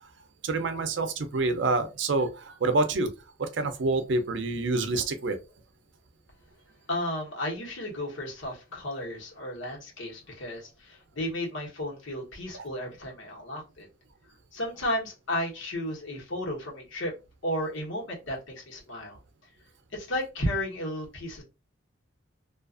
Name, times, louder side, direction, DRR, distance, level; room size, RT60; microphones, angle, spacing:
voice 1, 0.4-3.1 3.4-5.4 12.5-12.6, right 3 dB, 70° right, 0.5 m, -27 dB
voice 2, 6.9-13.9 14.5-17.1 17.4-19.2 19.9-21.4, left 1 dB, 85° left, 1.1 m, -33 dB
2.4 x 2.4 x 2.4 m
head